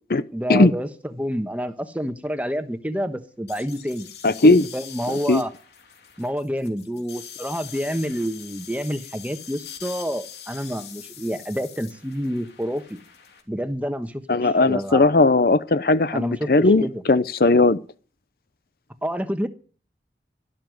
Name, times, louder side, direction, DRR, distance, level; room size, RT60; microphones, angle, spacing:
voice 1, 0.3-4.1 4.4-5.5 6.2-13.0 13.5-15.0 16.1-17.0 19.0-19.5, equal, 10° right, 1.2 m, -28 dB
sound 1, 3.5-13.4, left 9 dB, 75° left, 3.0 m, -43 dB
voice 2, 4.2-4.7 5.1-5.4 14.3-16.8 17.1-17.8, left 2 dB, 55° left, 0.6 m, -17 dB
12.5 x 12.0 x 7.8 m
head